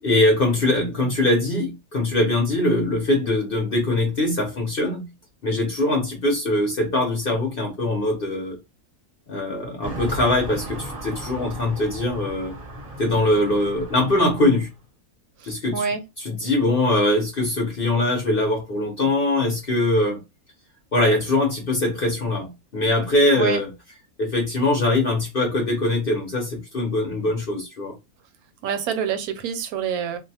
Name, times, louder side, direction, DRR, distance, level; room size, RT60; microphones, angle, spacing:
voice 1, 0.0-5.1 5.4-8.6 9.3-12.5 13.0-14.7 15.4-15.8 16.2-20.2 20.9-23.7 24.2-27.9, left 1 dB, 50° left, 0.7 m, -22 dB
sound 1, 9.8-14.7, right 1 dB, 35° right, 0.6 m, -36 dB
voice 2, 15.4-16.0 23.4-23.6 28.6-30.2, right 7 dB, 75° right, 1.0 m, -27 dB
2.6 x 2.1 x 2.7 m
omnidirectional pair, 1.6 m